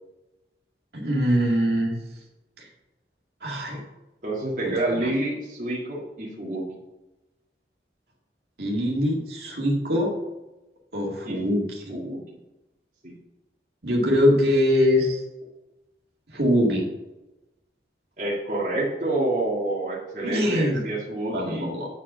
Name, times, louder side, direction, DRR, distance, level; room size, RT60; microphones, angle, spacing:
voice 1, 0.9-2.0 2.6-2.7 3.4-3.8 4.6-5.1 8.6-10.1 10.9-11.9 13.8-15.2 16.3-16.9 20.2-20.9 21.3-21.9, equal, 65° right, -2 dB, 2.2 m, -23 dB
voice 2, 4.2-6.7 11.2-11.4 11.9-12.2 13.0-13.1 18.2-21.8, right 2 dB, 45° right, -5 dB, 1.9 m, -28 dB
8.8 x 5.0 x 6.8 m, 1.0 s
head